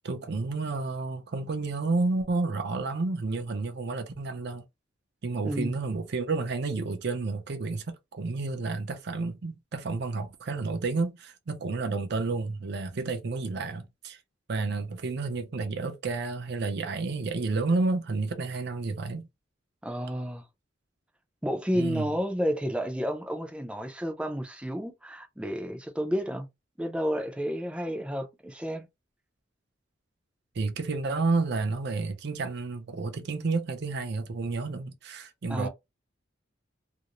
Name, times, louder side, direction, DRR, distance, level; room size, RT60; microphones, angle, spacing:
voice 1, 0.0-4.6 5.2-14.2 14.5-19.3 21.7-22.1 30.5-35.7, right 3 dB, 60° right, 0.5 m, -30 dB
voice 2, 19.8-20.4 21.4-26.5 26.8-28.9 35.5-35.7, equal, 5° right, 0.5 m, -31 dB
2.5 x 2.0 x 2.9 m
head